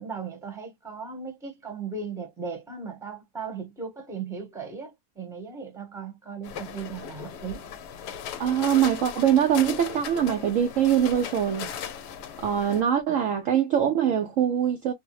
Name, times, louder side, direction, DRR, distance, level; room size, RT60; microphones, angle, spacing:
voice 1, 0.0-7.7 13.1-13.2, right 5 dB, ahead, 0.8 m, -37 dB
sound 1, 6.4-12.8, left 8 dB, 80° left, 1.2 m, -38 dB
voice 2, 8.4-11.7 12.4-14.9, right 9 dB, 70° right, 0.8 m, -23 dB
3.3 x 2.0 x 3.0 m
omnidirectional pair, 1.8 m